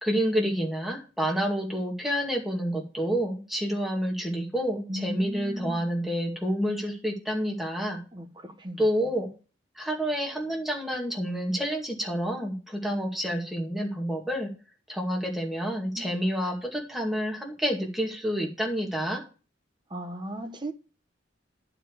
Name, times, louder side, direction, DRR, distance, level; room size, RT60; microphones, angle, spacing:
voice 1, 0.0-8.0 8.8-9.3 9.8-14.5 14.9-19.2, equal, ahead, 2.1 m, -29 dB
voice 2, 4.9-5.8 8.1-8.8 16.0-16.1 19.9-20.7, right 1 dB, 25° right, 1.0 m, -36 dB
11.0 x 5.0 x 6.5 m
head